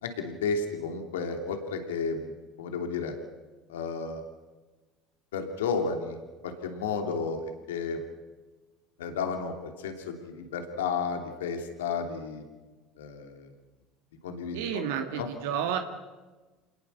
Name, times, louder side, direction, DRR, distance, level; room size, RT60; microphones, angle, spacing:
voice 1, 0.0-3.1 3.7-4.2 5.3-6.2 6.4-7.4 7.7-8.0 9.0-12.4 13.0-13.5 14.2-15.3, left 5 dB, 85° left, 4 dB, 2.9 m, -32 dB
voice 2, 14.5-15.8, right 9 dB, 80° right, 5 dB, 2.0 m, -30 dB
27.5 x 20.0 x 6.8 m, 1.2 s
hypercardioid pair, 75°, 0 cm